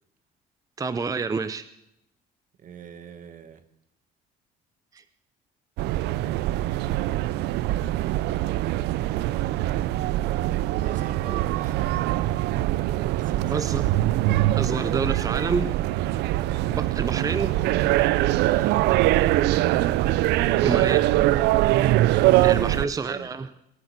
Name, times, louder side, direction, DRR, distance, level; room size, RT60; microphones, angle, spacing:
voice 1, 0.8-1.7 4.9-5.0 13.5-13.8 14.6-15.7 16.7-17.5 20.6-21.1 22.4-23.5, right 4 dB, 20° right, 13 dB, 0.6 m, -28 dB
voice 2, 2.6-3.6 9.6-10.6 10.8-11.8 12.8-13.7 18.3-18.9 20.4-21.4 22.0-23.4, right 7 dB, 50° right, 10 dB, 1.4 m, -43 dB
sound 1, 5.8-22.9, right 15 dB, 85° right, 0.5 m, -23 dB
22.0 x 8.4 x 6.7 m, 0.83 s
cardioid pair, 110°, 17 cm